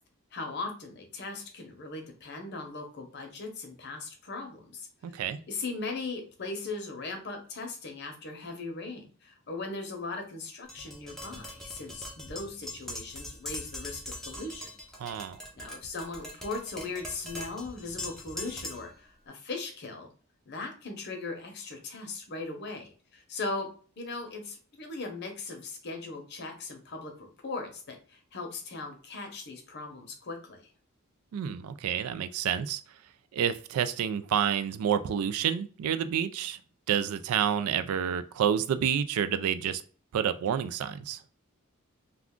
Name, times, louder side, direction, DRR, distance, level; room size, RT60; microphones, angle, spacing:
voice 1, 0.3-5.2 5.5-14.7 15.5-20.1 20.5-23.7 24.0-30.7, left 3 dB, 50° left, 4 dB, 0.7 m, -39 dB
voice 2, 5.0-5.4 15.0-15.4 31.3-32.8 33.3-36.6 36.9-39.8 40.1-41.2, right 8 dB, 80° right, 12 dB, 0.3 m, -29 dB
Tap, 10.7-19.0, left 1 dB, ahead, 0.5 m, -42 dB
2.4 x 2.3 x 3.6 m, 0.40 s
head